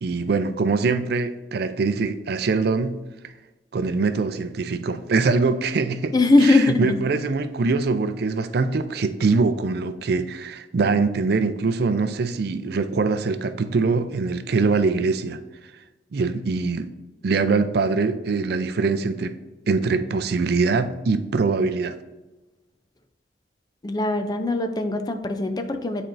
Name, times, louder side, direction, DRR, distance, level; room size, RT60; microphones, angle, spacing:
voice 1, 0.0-3.3 3.7-6.1 6.4-15.4 16.1-16.9 17.2-19.4 19.7-22.0, right 4 dB, 60° right, 0.4 m, -23 dB
voice 2, 6.1-7.0 23.8-26.0, left 2 dB, 25° left, 0.4 m, -20 dB
8.8 x 4.4 x 2.5 m
head